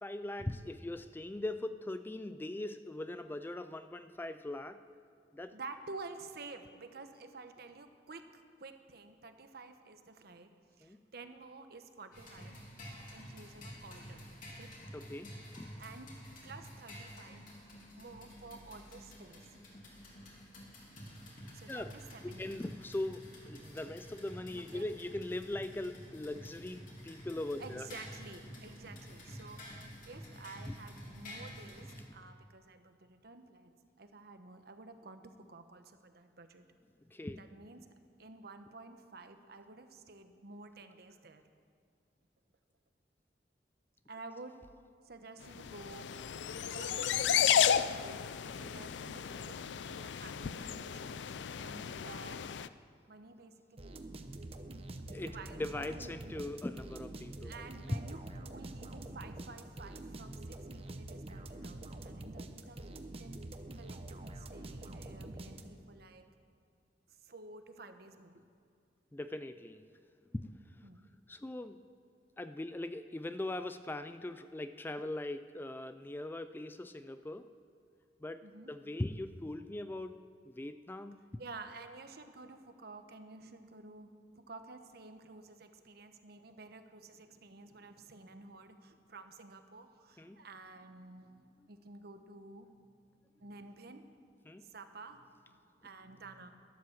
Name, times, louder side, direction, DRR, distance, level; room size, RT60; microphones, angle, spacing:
voice 1, 0.0-4.8 5.3-5.5 10.8-11.0 14.9-15.7 21.7-21.9 22.2-27.9 30.7-30.8 37.1-37.4 55.1-57.5 57.9-58.0 69.1-69.8 70.3-70.8 71.3-71.8 72.4-77.5 78.2-81.2 90.2-90.4 94.5-94.7, left 1 dB, 10° left, 11 dB, 0.3 m, -40 dB
voice 2, 5.5-10.5 10.8-12.6 13.1-14.7 15.8-16.1 16.4-17.4 18.0-19.5 21.5-22.6 24.7-24.8 27.6-29.8 30.0-36.7 37.4-37.9 38.2-41.4 44.1-44.6 45.0-46.1 46.6-48.2 48.5-52.5 53.1-54.1 55.2-56.2 57.4-63.4 63.8-66.3 67.1-68.4 70.8-71.1 78.4-78.7 81.4-84.1 84.3-92.7 93.4-94.0 94.6-96.5, right 3 dB, 60° right, 8 dB, 1.0 m, -51 dB
sound 1, 12.1-32.0, equal, 50° left, 3.0 m, -50 dB
sound 2, 45.6-52.7, left 8 dB, 80° left, 0.4 m, -33 dB
sound 3, 53.8-66.0, right 1 dB, 35° right, 0.8 m, -46 dB
12.5 x 11.5 x 7.3 m, 2.3 s
head